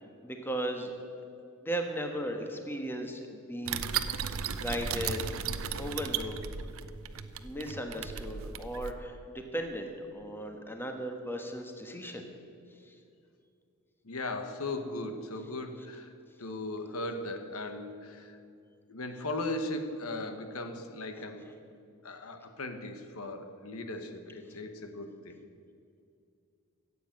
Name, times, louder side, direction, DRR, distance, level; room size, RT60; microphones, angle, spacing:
voice 1, 0.2-1.0 1.6-3.9 4.3-5.2 5.8-6.4 7.4-12.3 12.9-13.0, equal, 10° left, 4 dB, 1.3 m, -36 dB
sound 1, 3.7-8.9, right 7 dB, 65° right, 0.7 m, -35 dB
voice 2, 14.0-16.1 16.4-18.4 18.9-21.4 22.0-25.4, left 2 dB, 75° left, 7 dB, 1.2 m, -38 dB
15.0 x 8.4 x 8.8 m, 2.5 s
head